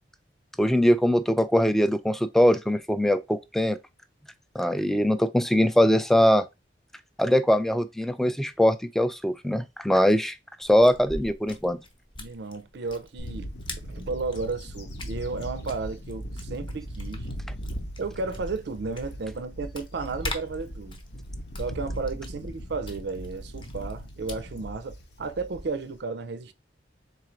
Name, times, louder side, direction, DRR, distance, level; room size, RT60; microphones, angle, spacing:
voice 1, 0.6-3.8 4.6-6.4 7.2-10.3 10.6-11.8, equal, ahead, 0.3 m, -22 dB
sound 1, 10.6-24.7, left 2 dB, 30° left, 0.8 m, -44 dB
voice 2, 12.2-17.3 18.0-21.0 21.6-26.5, right 4 dB, 65° right, 0.5 m, -33 dB
Bird / Wind, 13.2-26.0, equal, 65° left, 0.9 m, -38 dB
3.7 x 2.5 x 4.4 m
head